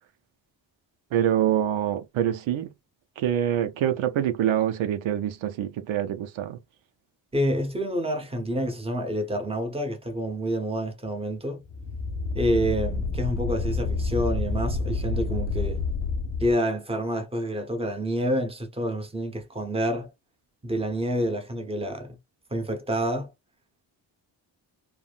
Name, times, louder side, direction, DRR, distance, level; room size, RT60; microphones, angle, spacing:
voice 1, 1.1-2.7 3.2-6.6, right 10 dB, 75° right, 0.6 m, -25 dB
voice 2, 7.3-11.6 12.3-15.9 16.4-20.1 20.6-22.2 22.5-23.3, equal, 10° right, 0.9 m, -28 dB
sound 1, 11.7-16.5, left 3 dB, 75° left, 1.1 m, -28 dB
3.4 x 2.1 x 2.4 m
cardioid pair, 85°, 46 cm